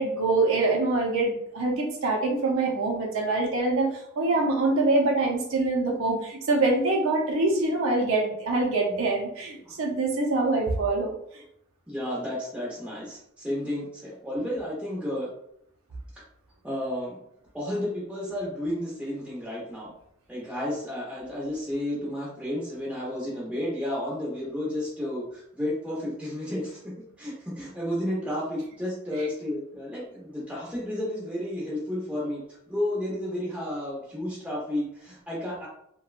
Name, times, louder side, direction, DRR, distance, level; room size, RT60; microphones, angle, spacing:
voice 1, 0.0-11.2 29.2-29.3, right 2 dB, 70° right, 0 dB, 0.5 m, -25 dB
voice 2, 11.9-15.3 16.6-17.2 17.5-19.9 20.3-26.8 27.2-32.4 32.7-35.7, left 1 dB, 5° right, -6 dB, 0.8 m, -32 dB
2.9 x 2.2 x 2.4 m, 0.72 s
head